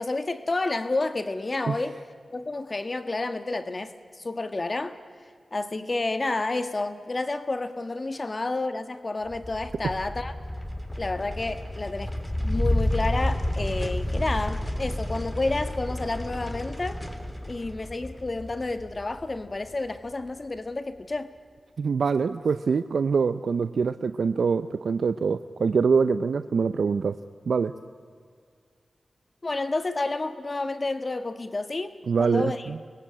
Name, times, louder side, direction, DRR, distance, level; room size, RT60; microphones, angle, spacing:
voice 1, 0.0-2.0 2.3-5.0 5.5-10.3 11.0-12.1 12.4-17.1 17.5-21.3 29.4-32.6, left 2 dB, 45° left, 10 dB, 1.5 m, -30 dB
sound 1, 9.3-19.9, left 1 dB, 20° left, 3.3 m, -31 dB
voice 2, 21.8-27.2 27.5-27.7 32.1-32.8, right 5 dB, 80° right, 12 dB, 0.6 m, -24 dB
26.0 x 21.0 x 8.8 m, 2.1 s
cardioid pair, 40°, 0 cm